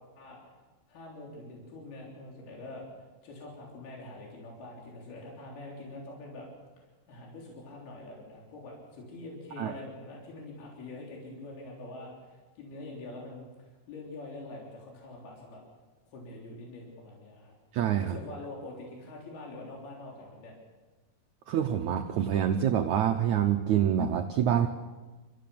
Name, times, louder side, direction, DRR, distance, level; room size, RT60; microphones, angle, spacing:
voice 1, 0.9-2.9 3.2-6.5 7.1-13.5 13.9-15.6 16.1-17.5 18.0-20.5, left 2 dB, 70° left, -2 dB, 5.5 m, -44 dB
voice 2, 17.7-18.2 21.5-24.7, right 9 dB, 85° right, 5 dB, 1.6 m, -26 dB
29.0 x 15.0 x 7.0 m, 1.2 s
omnidirectional pair, 4.7 m